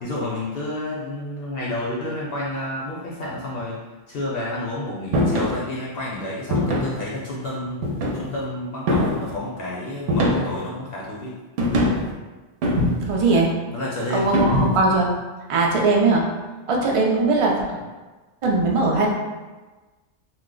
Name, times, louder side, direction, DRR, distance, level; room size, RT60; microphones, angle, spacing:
voice 1, 0.0-3.8 4.1-7.8 8.1-11.4 13.3-13.4 13.7-14.3, left 1 dB, 60° left, -5 dB, 0.8 m, -30 dB
sound 1, 5.1-5.6 6.5-7.0 7.8-8.4 8.9-9.3 10.1-10.7 11.6-12.1 12.6-13.2 14.3-14.9, equal, 85° right, 0.9 m, -22 dB
voice 2, 13.1-13.5 14.1-15.1 15.5-16.2 16.7-17.5 18.4-19.1, right 3 dB, 60° right, -2 dB, 0.3 m, -19 dB
3.0 x 2.1 x 3.6 m, 1.2 s
omnidirectional pair, 1.2 m